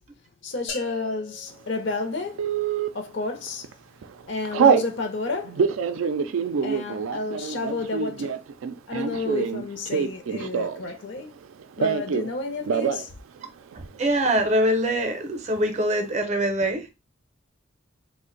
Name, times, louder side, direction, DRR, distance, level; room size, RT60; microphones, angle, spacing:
voice 1, 0.4-2.5 2.9-3.7 4.3-5.6 6.6-8.4 8.9-11.4 11.8-13.1, left 3 dB, 65° left, 0.5 m, -31 dB
sound 1, 0.7-2.7, left 5 dB, 80° left, 1.0 m, -41 dB
Telephone, 2.4-2.9 3.5-3.7 4.0-4.9 5.4-10.9 11.2-12.3 12.6-13.1 13.4-13.5 13.7-14.3, right 6 dB, 90° right, 0.3 m, -25 dB
voice 2, 13.7-16.9, right 1 dB, 35° right, 0.5 m, -24 dB
2.5 x 2.1 x 3.8 m
head